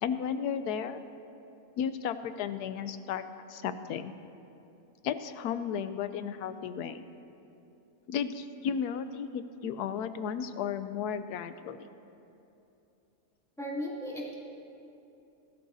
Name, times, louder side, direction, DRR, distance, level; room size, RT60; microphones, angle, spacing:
voice 1, 0.0-1.0 1.8-3.2 3.5-4.1 5.0-7.0 8.1-11.9, left 7 dB, 85° left, 11 dB, 1.2 m, -34 dB
voice 2, 13.6-14.3, equal, ahead, -6 dB, 2.6 m, -36 dB
20.0 x 13.0 x 2.7 m, 2.8 s
omnidirectional pair, 1.6 m